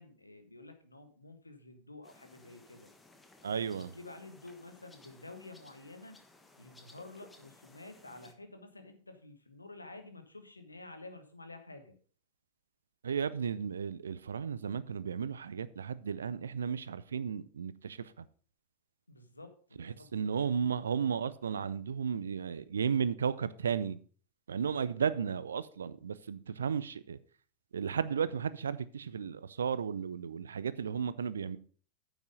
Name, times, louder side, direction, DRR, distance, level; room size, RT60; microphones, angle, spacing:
voice 1, 0.0-2.9 3.7-6.2 6.6-12.0 19.1-20.5, left 2 dB, 80° left, 1.5 m, -51 dB
sound 1, 2.0-8.3, left 2 dB, 10° left, 1.4 m, -59 dB
voice 2, 3.4-3.9 13.0-18.1 19.8-24.0 24.5-27.2 27.7-31.6, right 7 dB, 70° right, 0.6 m, -34 dB
9.5 x 7.2 x 5.3 m
figure-of-eight pair, 90°, 0 cm